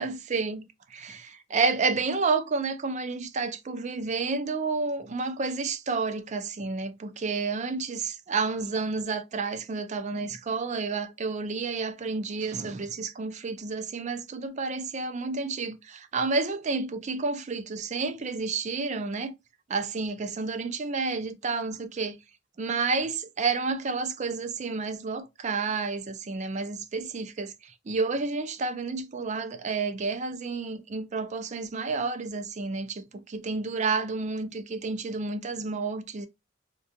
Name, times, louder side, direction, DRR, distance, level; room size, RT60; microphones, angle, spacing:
voice 1, 0.0-1.2 1.5-19.3 19.7-22.2 22.6-36.3, right 4 dB, 35° right, 0.4 m, -30 dB
3.6 x 2.2 x 2.7 m
head